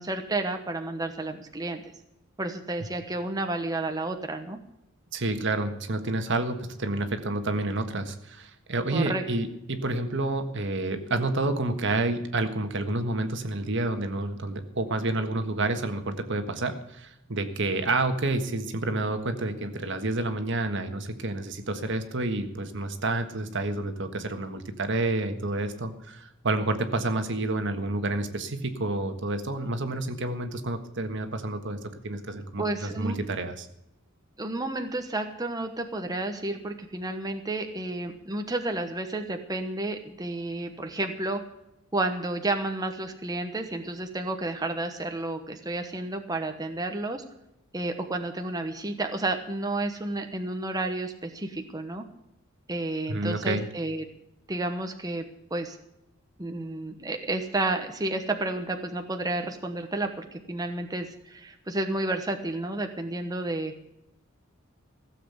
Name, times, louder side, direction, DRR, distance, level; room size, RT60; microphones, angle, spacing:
voice 1, 0.0-1.8 2.4-4.6 8.9-9.2 32.6-33.2 34.4-41.4 41.9-47.2 47.7-52.0 52.7-54.1 54.5-55.8 56.4-63.7, right 2 dB, 20° right, 5 dB, 1.1 m, -31 dB
voice 2, 5.1-33.7 53.1-53.7, right 2 dB, 60° right, 8 dB, 1.5 m, -29 dB
16.0 x 7.7 x 8.0 m, 0.85 s
head